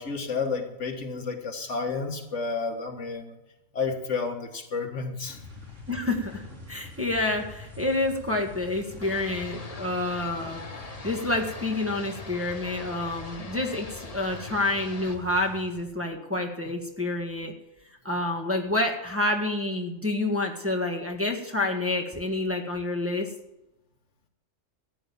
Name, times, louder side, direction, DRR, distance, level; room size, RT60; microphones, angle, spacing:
voice 1, 0.0-3.4 3.7-5.4, left 4 dB, 70° left, 4 dB, 1.9 m, -31 dB
sound 1, 5.3-15.8, left 2 dB, 80° right, 4.3 m, -45 dB
voice 2, 5.9-17.5 18.0-23.3, left 2 dB, 10° right, 0 dB, 1.7 m, -28 dB
sound 2, 9.0-15.2, left 3 dB, 30° left, 1.3 m, -42 dB
14.0 x 9.7 x 7.1 m, 0.90 s
omnidirectional pair, 1.3 m